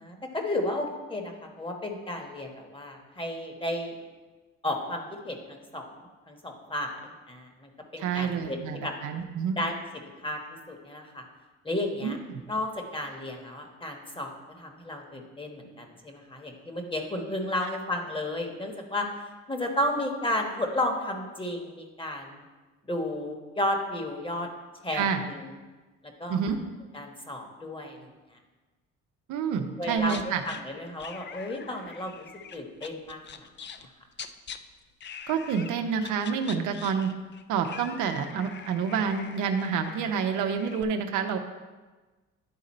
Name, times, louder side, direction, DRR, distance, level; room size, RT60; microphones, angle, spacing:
voice 1, 0.0-4.0 4.6-5.9 6.3-7.0 7.3-8.9 9.6-9.7 10.2-10.4 10.7-11.2 11.6-12.2 12.5-14.3 14.6-19.1 19.5-22.4 22.9-24.5 24.8-25.4 26.2-26.4 26.9-28.1 29.8-32.3 32.5-33.2, left 1 dB, 15° left, 3 dB, 1.1 m, -33 dB
voice 2, 8.0-9.6 12.0-12.4 17.6-17.7 24.9-25.2 26.3-26.6 29.3-30.4 35.3-37.1 37.5-41.4, right 6 dB, 90° right, 6 dB, 0.7 m, -28 dB
sound 1, 30.0-30.6 31.0-33.9 34.1-34.6 35.0-35.7 36.0-40.8, left 7 dB, 40° left, 0.4 m, -44 dB
10.5 x 3.9 x 4.2 m, 1.3 s
cardioid pair, 90°, 30 cm